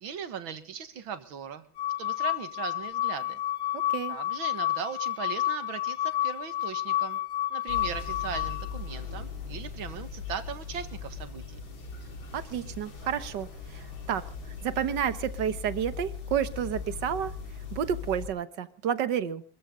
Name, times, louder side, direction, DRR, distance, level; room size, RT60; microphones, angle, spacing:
voice 1, 0.0-1.7 2.0-3.4 4.1-7.2 7.5-11.6, right 7 dB, 80° right, 11 dB, 2.4 m, -38 dB
sound 1, 1.8-8.8, left 14 dB, 55° left, 1.5 m, -30 dB
voice 2, 3.7-4.2 12.3-17.3 17.7-19.4, right 9 dB, 65° right, 14 dB, 1.7 m, -31 dB
sound 2, 7.7-18.3, left 6 dB, 75° left, 3.4 m, -39 dB
26.5 x 14.5 x 3.8 m, 0.38 s
omnidirectional pair, 2.2 m